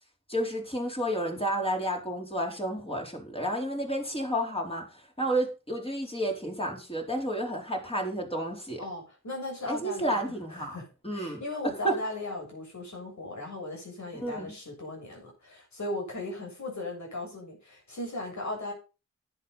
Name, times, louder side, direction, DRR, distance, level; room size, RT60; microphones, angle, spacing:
voice 1, 0.3-4.8 5.2-8.8 9.7-10.8 11.0-11.4 11.8-11.9 14.2-14.5, right 1 dB, 20° left, 4.3 m, -31 dB
voice 2, 8.8-10.9 11.1-18.7, left 2 dB, 70° left, 7.4 m, -37 dB
10.5 x 8.2 x 5.6 m
wide cardioid pair, 70°, 29 cm